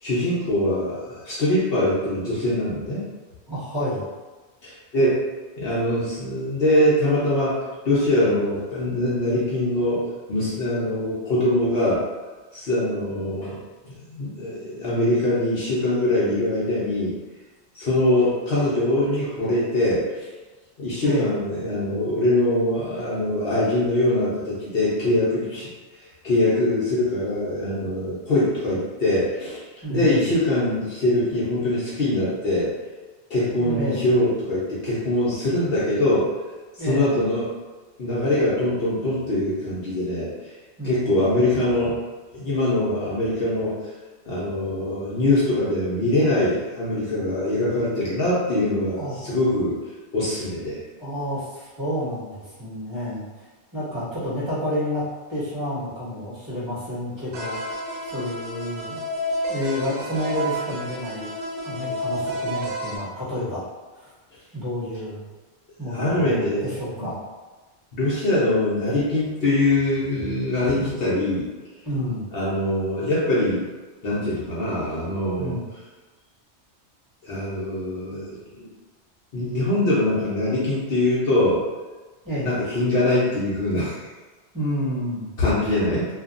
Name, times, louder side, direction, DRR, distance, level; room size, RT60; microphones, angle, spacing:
voice 1, 0.0-3.0 4.6-5.2 5.6-10.0 10.3-12.0 12.5-17.1 17.7-20.3 20.8-25.7 26.0-29.6 29.9-32.7 33.3-36.3 36.8-37.5 38.0-40.5 40.8-41.9 42.3-43.8 44.3-49.8 50.1-50.8 65.9-66.6 67.0-67.1 67.9-71.5 72.3-73.6 74.0-75.6 77.2-78.7 79.3-81.6 82.4-84.0 85.4-86.1, left 1 dB, 60° left, -9 dB, 0.9 m, -23 dB
voice 2, 3.5-4.0 21.0-21.3 29.8-30.3 33.6-34.0 36.8-37.2 40.8-41.4 48.9-49.2 51.0-53.2 53.7-57.8 58.0-59.0 59.5-61.3 61.6-63.6 63.9-64.1 64.5-65.2 65.8-67.2 70.7-71.0 71.8-72.2 75.4-75.6 82.2-82.6 84.5-85.3, left 1 dB, 15° right, -13 dB, 1.5 m, -29 dB
sound 1, 57.3-63.0, equal, 65° right, 0.7 m, -30 dB
2.8 x 2.4 x 2.5 m, 1.3 s
omnidirectional pair, 1.2 m